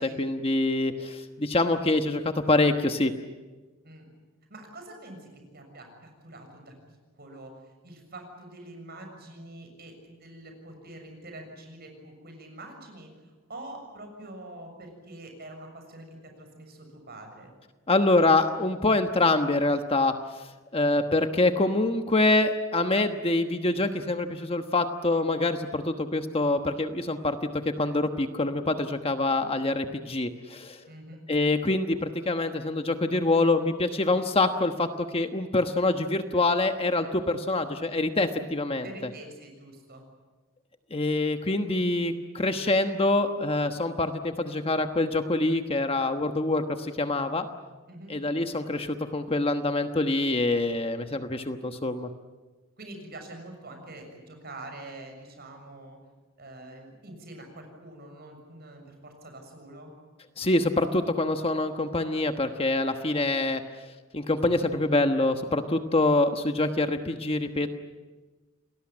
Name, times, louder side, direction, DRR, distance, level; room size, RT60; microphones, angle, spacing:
voice 1, 0.0-3.1 17.9-20.5 20.7-27.4 27.8-30.8 31.3-38.9 40.9-47.5 48.1-52.1 60.4-63.6 64.1-67.7, left 2 dB, 25° left, 7 dB, 1.2 m, -25 dB
voice 2, 4.5-6.7 7.1-17.5 30.9-31.2 38.8-40.0 47.9-48.2 52.8-56.0 56.4-59.9, right 1 dB, 50° right, 4 dB, 7.0 m, -45 dB
28.5 x 19.5 x 8.8 m, 1.3 s
head